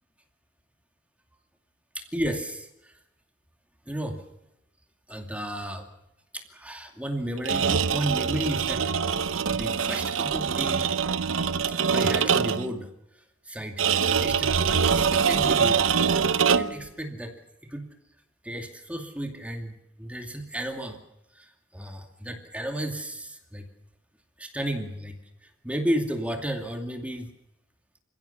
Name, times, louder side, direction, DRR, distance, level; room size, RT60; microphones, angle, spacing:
voice 1, 1.9-2.9 3.9-4.2 5.1-5.9 6.3-8.8 9.5-10.9 11.9-12.9 13.4-13.8 14.2-15.9 16.3-17.3 17.6-17.9 18.4-21.0 21.3-23.6 24.4-25.2 25.4-27.3, right 1 dB, 5° right, 4 dB, 2.5 m, -33 dB
sound 1, 7.4-12.7 13.8-16.9, right 6 dB, 80° right, 0.9 m, -24 dB
28.0 x 16.5 x 7.0 m, 0.86 s
head